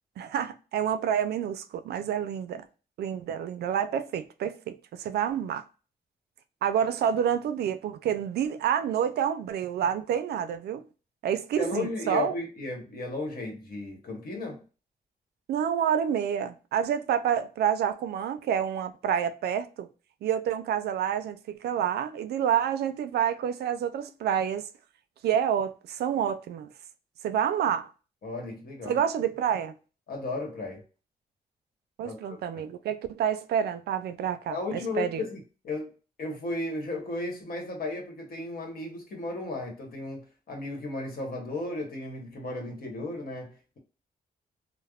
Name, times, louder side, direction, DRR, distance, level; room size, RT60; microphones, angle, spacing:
voice 1, 0.2-2.7 3.0-5.6 6.6-10.9 11.2-12.3 15.5-19.9 20.2-24.7 25.2-26.7 27.2-27.9 28.9-29.8 32.0-35.3, right 9 dB, 85° right, 0.4 m, -28 dB
voice 2, 11.6-14.6 28.2-29.0 30.1-30.8 32.0-32.6 34.5-35.9 36.2-43.8, left 2 dB, 65° left, 1.2 m, -35 dB
3.4 x 2.1 x 2.3 m
cardioid pair, 70°, 16 cm